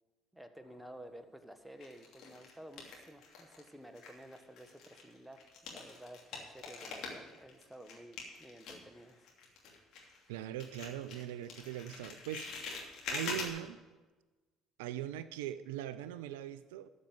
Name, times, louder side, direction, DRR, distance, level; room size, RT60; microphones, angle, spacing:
voice 1, 0.3-9.3, right 1 dB, 5° right, 8 dB, 1.3 m, -53 dB
sound 1, 0.6-1.2 1.8-3.7 3.9-10.3 10.6-13.5, left 4 dB, 60° left, 2.7 m, -45 dB
voice 2, 10.3-12.4 13.1-13.8 14.8-16.9, right 12 dB, 75° right, 14 dB, 0.4 m, -41 dB
13.0 x 5.4 x 7.9 m, 1.2 s
hypercardioid pair, 55°, 0 cm